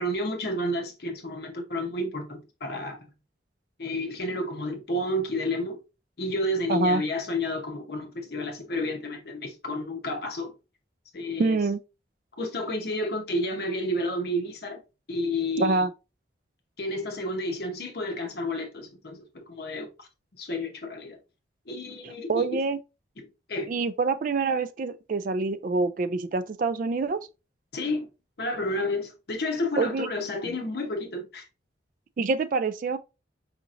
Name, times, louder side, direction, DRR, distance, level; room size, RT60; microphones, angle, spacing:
voice 1, 0.0-3.0 3.8-5.8 6.2-10.5 11.1-11.6 12.4-14.8 15.1-15.9 16.8-20.1 20.4-21.2 21.7-22.6 23.2-23.7 27.7-28.1 28.4-31.4, left 1 dB, 55° left, 0.9 m, -31 dB
voice 2, 6.7-7.0 11.4-11.8 15.6-15.9 22.0-22.8 23.7-27.2 29.8-30.1 30.4-30.5 32.2-33.0, right 3 dB, 45° right, 0.3 m, -26 dB
5.0 x 2.9 x 2.5 m
head